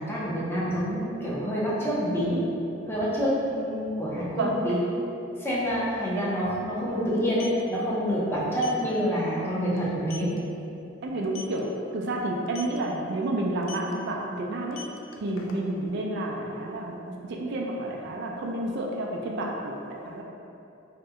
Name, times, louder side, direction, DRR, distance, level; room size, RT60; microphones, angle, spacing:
voice 1, 0.0-2.4 2.9-4.8 5.4-10.3, equal, 10° left, -7 dB, 0.5 m, -27 dB
sound 1, 5.6-5.7 5.9-6.1 7.1-7.6 8.6-8.8 9.2-9.4 9.8-9.9 10.1-10.4 11.2-11.6 12.5-12.8 13.6-13.9 14.6-15.9, left 5 dB, 85° left, 0.3 m, -41 dB
voice 2, 11.0-11.6 11.9-14.8 15.2-20.2, right 1 dB, 60° right, -1 dB, 0.3 m, -30 dB
2.7 x 2.1 x 3.5 m, 2.8 s
head